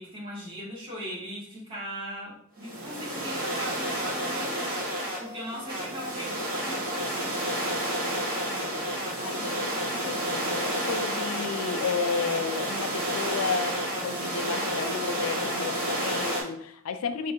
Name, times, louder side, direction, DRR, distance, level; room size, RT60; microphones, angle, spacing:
voice 1, 0.0-7.3, equal, 25° right, -5 dB, 1.4 m, -39 dB
sound 1, 2.6-16.4, right 1 dB, 45° right, 1.1 m, -30 dB
voice 2, 8.5-17.3, left 5 dB, 90° left, 9 dB, 0.4 m, -33 dB
4.2 x 2.7 x 3.5 m, 0.62 s
head